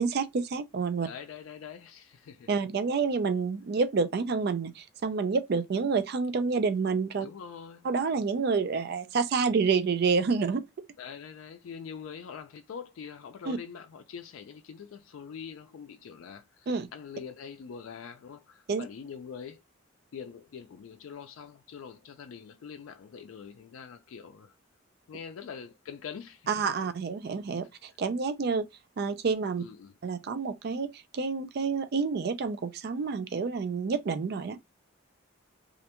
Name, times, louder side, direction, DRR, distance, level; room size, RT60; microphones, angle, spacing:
voice 1, 0.0-1.1 2.5-7.3 7.8-10.6 13.5-13.6 16.7-16.9 18.7-18.8 26.5-28.6 29.0-29.6 30.0-30.9 31.1-34.6, right 5 dB, 50° right, 0.4 m, -28 dB
voice 2, 1.0-2.5 7.2-7.9 11.0-19.6 20.1-24.5 25.1-26.5 29.6-29.9, left 7 dB, 85° left, 0.4 m, -44 dB
2.4 x 2.2 x 2.8 m
head